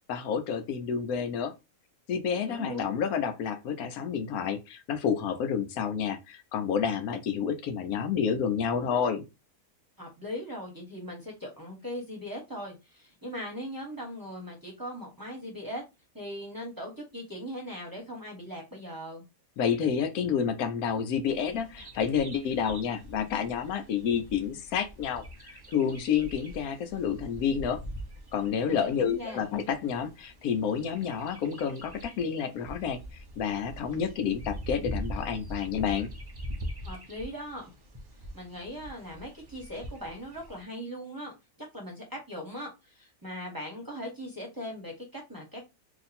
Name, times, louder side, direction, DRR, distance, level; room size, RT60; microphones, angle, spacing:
voice 1, 0.1-1.5 2.1-9.3 19.6-27.8 28.3-36.1, left 7 dB, 80° left, 1.1 m, -29 dB
voice 2, 2.5-2.9 10.0-15.8 16.1-19.2 28.7-29.4 36.8-37.7 38.3-41.3 41.6-45.7, equal, 15° right, 1.0 m, -39 dB
Bird vocalization bird call bird song, 21.2-40.6, equal, 30° right, 0.4 m, -43 dB
2.9 x 2.5 x 4.1 m
omnidirectional pair, 1.5 m